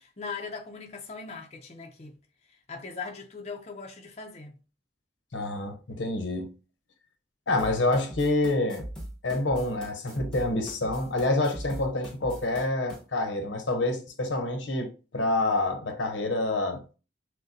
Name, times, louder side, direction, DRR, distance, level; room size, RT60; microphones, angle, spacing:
voice 1, 0.0-2.2 2.4-4.6, left 4 dB, 35° left, 0.6 m, -40 dB
voice 2, 5.3-6.5 7.5-8.8 9.2-16.8, left 2 dB, 75° left, 0.8 m, -27 dB
sound 1, 7.6-13.0, equal, 5° left, 1.1 m, -41 dB
6.3 x 2.2 x 2.7 m
head